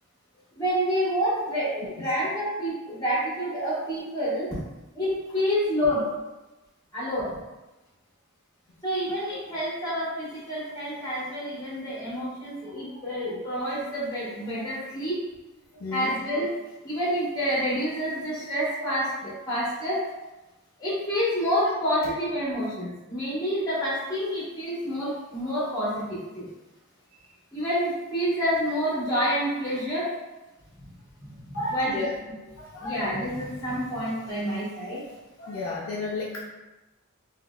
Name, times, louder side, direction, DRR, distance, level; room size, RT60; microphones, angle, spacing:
voice 1, 0.5-4.6 4.9-6.1 6.9-7.4 8.8-15.2 15.9-16.5 16.8-20.0 20.8-26.5 27.5-30.1 31.2-32.0 32.8-35.0, equal, 15° left, -9 dB, 1.3 m, -28 dB
voice 2, 15.7-16.1 22.0-22.1 31.5-32.1 32.4-33.0 35.4-36.4, left 3 dB, 70° left, -4 dB, 0.5 m, -33 dB
3.6 x 2.7 x 2.3 m, 1.1 s
head